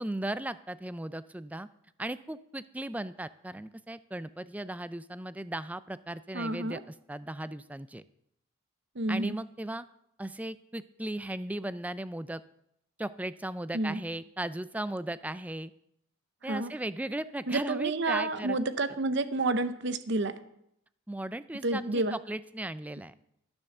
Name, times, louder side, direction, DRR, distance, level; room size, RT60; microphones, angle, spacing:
voice 1, 0.0-1.7 2.0-8.0 9.1-9.9 10.2-12.4 13.0-15.7 16.4-18.6 21.1-23.1, right 1 dB, 5° right, 15 dB, 0.3 m, -37 dB
voice 2, 6.3-6.8 9.0-9.4 13.7-14.0 16.5-16.7 17.5-20.3 21.6-22.1, right 2 dB, 55° right, 12 dB, 0.8 m, -29 dB
12.5 x 7.0 x 6.7 m, 0.76 s
head